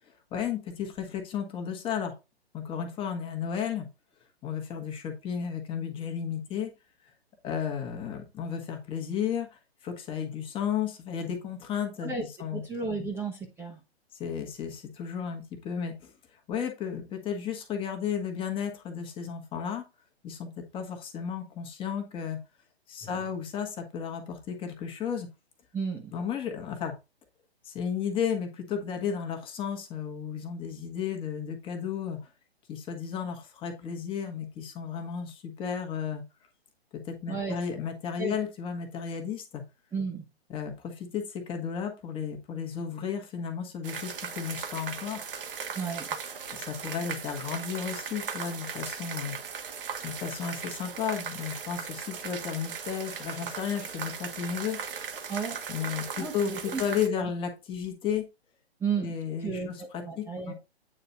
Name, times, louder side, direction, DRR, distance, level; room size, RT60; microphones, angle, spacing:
voice 1, 0.3-2.1 2.5-3.9 4.4-6.7 7.4-12.1 12.4-12.6 13.0-13.1 14.1-16.1 16.5-19.8 20.2-22.4 22.9-25.3 26.1-26.9 27.6-32.3 32.7-36.2 36.9-39.6 40.5-45.2 46.5-49.4 50.0-54.8 55.7-58.3 59.0-60.5, left 7 dB, 15° left, 1.5 m, -33 dB
voice 2, 12.5-13.8 25.7-26.1 37.3-37.6 38.2-38.4 39.9-40.3 45.7-46.1 55.3-55.6 56.2-56.8 57.2-57.3 58.8-59.1 59.4-60.5, right 5 dB, 5° right, 1.1 m, -33 dB
sound 1, 43.8-57.1, right 6 dB, 55° right, 1.5 m, -38 dB
8.8 x 4.0 x 4.0 m
figure-of-eight pair, 130°, 32 cm